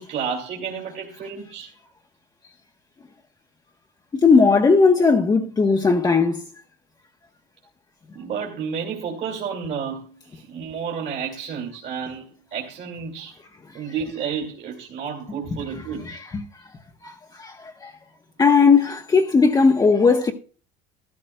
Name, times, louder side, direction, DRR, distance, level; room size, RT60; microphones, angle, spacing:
voice 1, 0.0-1.7 8.1-12.3 12.5-13.4 13.7-16.2, right 6 dB, 50° right, 2.4 m, -31 dB
voice 2, 4.1-6.5 16.1-16.4 17.0-17.9 18.4-20.3, left 4 dB, 20° left, 0.9 m, -17 dB
13.5 x 13.0 x 2.2 m
supercardioid pair, 110°, 20 cm